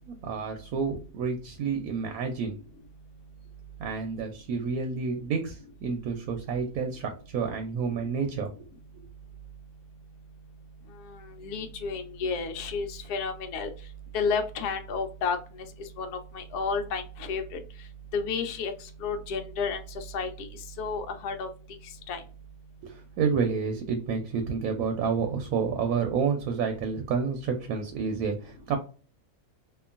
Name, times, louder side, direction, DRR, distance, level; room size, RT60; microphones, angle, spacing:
voice 1, 0.1-2.6 3.8-8.5 22.8-28.8, right 5 dB, 70° right, 4 dB, 1.0 m, -29 dB
voice 2, 10.9-13.7 14.1-17.9 18.1-22.2, left 5 dB, 75° left, 6 dB, 1.1 m, -32 dB
2.9 x 2.4 x 2.4 m, 0.37 s
omnidirectional pair, 1.7 m